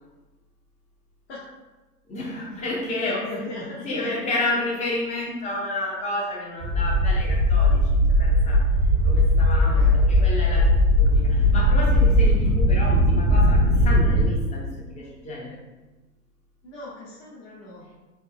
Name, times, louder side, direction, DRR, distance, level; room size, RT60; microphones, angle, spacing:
voice 1, 2.1-3.3 3.8-8.7 9.0-15.6, left 2 dB, 15° left, -2 dB, 0.7 m, -30 dB
voice 2, 3.0-4.1 9.7-10.3 16.6-17.8, left 2 dB, 40° left, -7 dB, 1.0 m, -38 dB
sound 1, 6.6-14.2, equal, 35° right, 0.7 m, -19 dB
4.1 x 2.0 x 3.6 m, 1.2 s
hypercardioid pair, 115°, 49 cm